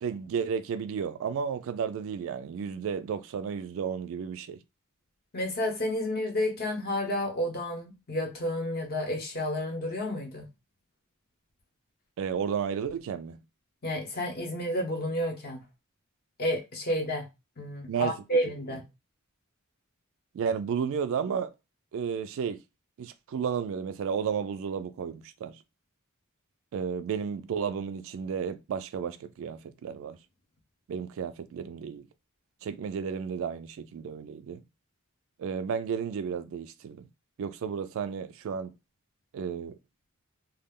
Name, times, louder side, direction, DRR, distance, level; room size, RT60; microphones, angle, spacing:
voice 1, 0.0-4.6 12.2-13.4 17.9-18.1 18.7-18.8 20.3-21.5 21.9-22.6 23.0-25.6 26.7-30.2 30.9-32.0 32.6-34.6 35.4-37.0 37.4-38.7 39.3-39.8, right 7 dB, 65° right, 0.3 m, -32 dB
voice 2, 5.3-10.5 13.8-15.6 16.4-17.3 17.6-18.8, left 1 dB, 45° left, 0.8 m, -30 dB
2.3 x 2.0 x 3.5 m
head